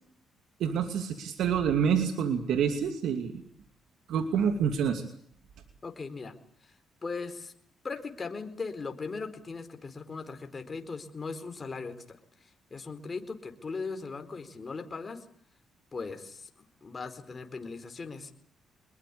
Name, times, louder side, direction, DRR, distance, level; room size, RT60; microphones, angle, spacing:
voice 1, 0.6-3.4 4.1-5.0, right 7 dB, 75° right, 7 dB, 2.6 m, -27 dB
voice 2, 5.8-6.4 7.0-7.5 7.8-15.2 15.9-18.3, left 4 dB, 30° left, 7 dB, 4.4 m, -39 dB
25.5 x 21.5 x 8.5 m, 0.62 s
cardioid pair, 90°, 0 cm